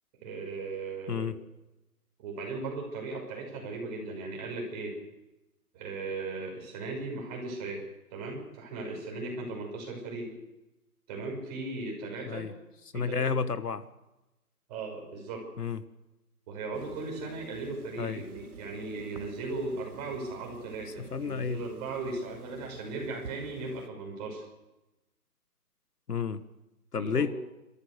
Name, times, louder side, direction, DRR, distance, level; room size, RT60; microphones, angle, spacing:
voice 1, 0.2-1.4 2.2-4.9 5.7-7.8 8.1-10.3 11.1-12.5 12.9-13.2 14.7-15.4 16.5-24.5 27.0-27.3, right 3 dB, 25° right, 0 dB, 6.1 m, -37 dB
voice 2, 12.9-13.8 15.6-15.8 18.0-18.2 21.1-21.6 26.1-26.4 26.9-27.3, left 6 dB, 80° left, 13 dB, 1.4 m, -30 dB
sound 1, 16.7-23.9, right 5 dB, 70° right, 1.9 m, -49 dB
27.5 x 14.0 x 6.6 m, 0.99 s
hypercardioid pair, 150°, 46 cm